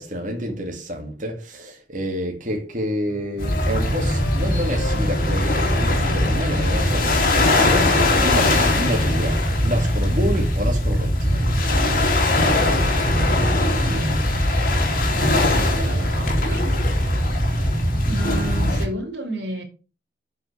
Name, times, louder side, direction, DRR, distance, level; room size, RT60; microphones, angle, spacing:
voice 1, 0.0-11.5, equal, 45° right, 2.4 m, -28 dB
sound 1, 3.1-9.3, left 2 dB, 80° left, 1.2 m, -33 dB
sound 2, 3.4-18.9, left 1 dB, 50° left, 2.6 m, -20 dB
voice 2, 13.8-14.3 15.2-16.7 17.9-19.6, right 1 dB, 80° right, 3.3 m, -30 dB
7.8 x 5.6 x 6.3 m
head